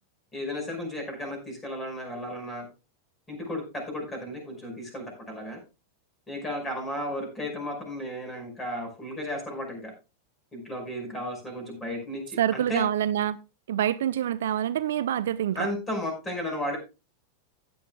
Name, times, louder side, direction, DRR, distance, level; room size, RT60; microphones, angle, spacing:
voice 1, 0.3-2.7 3.3-5.6 6.3-9.9 10.5-12.8 15.5-16.8, left 1 dB, 15° left, 5.1 m, -34 dB
voice 2, 12.4-13.4 13.7-15.7, right 11 dB, 60° right, 0.4 m, -26 dB
15.5 x 9.3 x 2.3 m
figure-of-eight pair, 90°, 0 cm